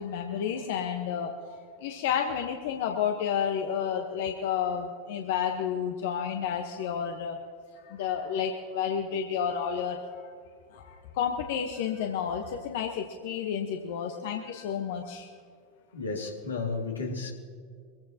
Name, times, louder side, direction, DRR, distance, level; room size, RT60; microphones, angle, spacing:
voice 1, 0.0-1.4 1.8-7.4 7.8-10.3 10.7-15.3, left 8 dB, 60° left, 3 dB, 1.1 m, -31 dB
voice 2, 15.9-17.3, left 4 dB, 85° left, 0 dB, 2.3 m, -33 dB
23.5 x 15.0 x 2.9 m, 2.1 s
figure-of-eight pair, 85°, 0 cm